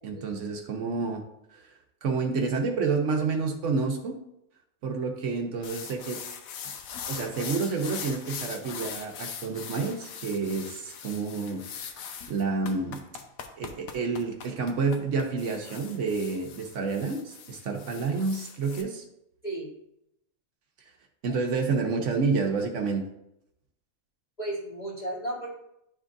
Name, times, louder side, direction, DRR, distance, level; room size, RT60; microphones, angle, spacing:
voice 1, 0.0-1.2 1.5-1.7 2.0-4.2 4.8-6.2 7.1-11.6 12.3-13.0 13.6-19.0 21.2-23.0, right 4 dB, 60° right, 3 dB, 1.1 m, -29 dB
sound 1, 5.6-18.8, left 7 dB, 75° left, 1.1 m, -41 dB
voice 2, 24.4-25.5, right 1 dB, 30° left, -12 dB, 1.8 m, -34 dB
11.0 x 3.7 x 2.5 m, 0.80 s
omnidirectional pair, 1.5 m